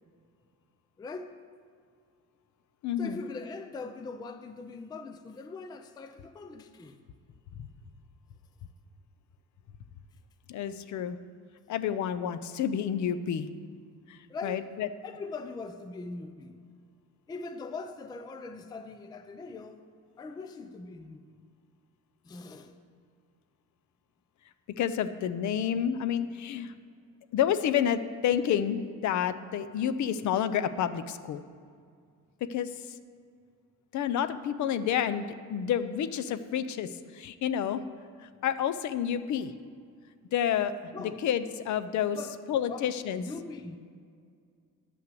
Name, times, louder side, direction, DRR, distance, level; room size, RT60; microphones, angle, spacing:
voice 1, 1.0-1.4 3.0-7.0 14.3-14.7 15.0-16.6 17.3-19.9 20.2-21.2 22.2-22.8 40.9-41.3 42.1-42.4 42.7-43.8, left 3 dB, 15° left, 8 dB, 0.3 m, -41 dB
voice 2, 2.8-3.2 10.5-11.2 11.7-13.5 14.1-14.9 24.8-26.7 27.3-31.4 32.5-32.7 33.9-37.8 38.4-39.5 40.3-40.7 41.0-42.2 42.5-43.2, left 9 dB, 60° left, 12 dB, 0.6 m, -29 dB
11.0 x 5.8 x 7.6 m, 2.2 s
cardioid pair, 180°, 33 cm